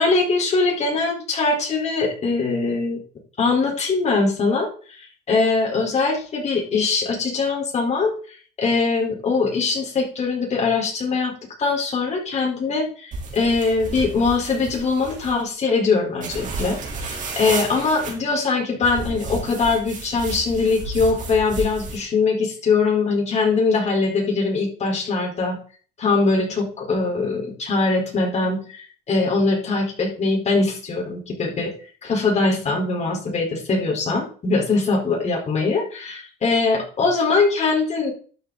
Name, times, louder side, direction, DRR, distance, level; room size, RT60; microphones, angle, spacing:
voice 1, 0.0-3.0 3.4-4.7 5.3-8.1 8.6-11.3 11.6-25.6 26.0-31.7 32.0-38.1, left 4 dB, 40° left, -1 dB, 4.6 m, -22 dB
sound 1, 13.1-15.4 16.2-18.1 18.8-22.0, right 3 dB, 50° right, 3.8 m, -32 dB
12.0 x 7.0 x 4.2 m, 0.41 s
cardioid pair, 110°, 17 cm